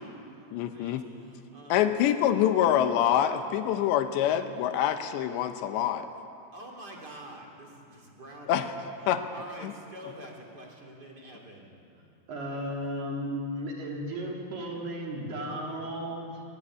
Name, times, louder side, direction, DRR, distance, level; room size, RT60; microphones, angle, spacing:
voice 1, 0.0-2.0 6.5-11.7, right 1 dB, 25° right, 0 dB, 2.7 m, -47 dB
voice 2, 0.5-1.1 1.7-6.1 8.5-8.7 9.1-9.2 9.6-9.7, left 10 dB, 80° left, 8 dB, 3.1 m, -25 dB
voice 3, 12.3-16.4, equal, 60° right, -1 dB, 5.2 m, -34 dB
20.5 x 20.5 x 9.7 m, 2.7 s
omnidirectional pair, 5.2 m